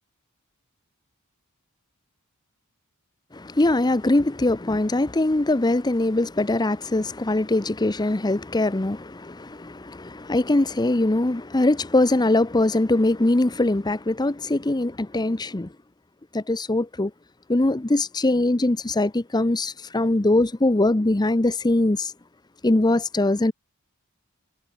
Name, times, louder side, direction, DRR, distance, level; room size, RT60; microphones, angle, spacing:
voice 1, 3.3-15.7 16.3-17.1 17.5-22.1 22.6-23.5, left 2 dB, 20° left, 0.7 m, -22 dB
head